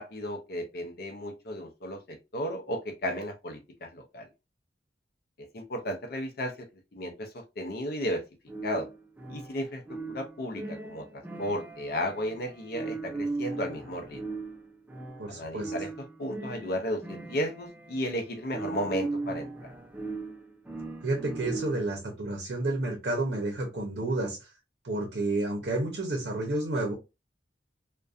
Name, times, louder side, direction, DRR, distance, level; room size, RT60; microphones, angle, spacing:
voice 1, 0.0-4.3 5.4-6.7 6.9-8.2 8.6-8.9 9.3-14.2 15.3-19.7, equal, 55° left, 0.5 m, -34 dB
sound 1, 8.5-22.0, right 3 dB, 10° right, 0.3 m, -38 dB
voice 2, 15.2-15.7 21.0-24.5 24.8-26.9, right 2 dB, 60° right, 0.6 m, -30 dB
2.4 x 2.2 x 2.3 m
head